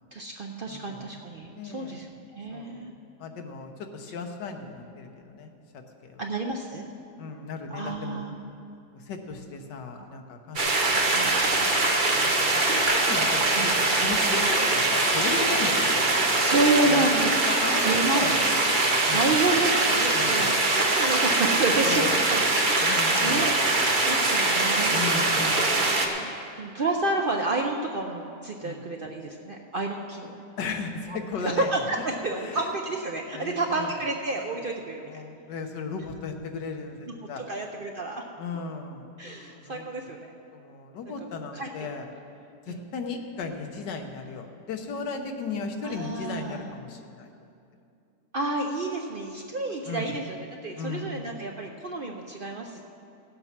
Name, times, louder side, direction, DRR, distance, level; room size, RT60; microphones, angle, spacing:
voice 1, 0.1-2.9 6.2-6.9 7.7-8.5 10.0-10.2 11.1-11.7 13.5-14.6 16.4-17.4 17.7-18.2 19.0-23.5 24.0-30.4 31.1-35.2 37.1-38.2 39.2-40.3 41.5-41.7 42.7-42.8 45.8-46.7 48.3-52.8, right 2 dB, 80° right, 2 dB, 0.4 m, -30 dB
voice 2, 0.7-1.1 1.6-2.0 2.5-2.9 3.2-5.8 6.1-6.2 7.2-8.2 8.9-10.6 11.2-13.7 14.0-16.2 16.8-18.4 19.0-19.4 20.1-20.6 21.8-22.2 22.8-23.5 24.9-26.0 28.6-28.8 30.6-31.7 32.3-32.7 33.3-33.9 35.1-37.4 38.4-39.1 39.5-39.9 40.5-42.1 42.7-47.3 49.8-50.2 50.8-51.3, left 4 dB, 85° left, 5 dB, 1.6 m, -36 dB
sound 1, 10.6-26.1, right 2 dB, 35° right, 1.0 m, -23 dB
16.0 x 7.8 x 5.9 m, 2.5 s
omnidirectional pair, 1.8 m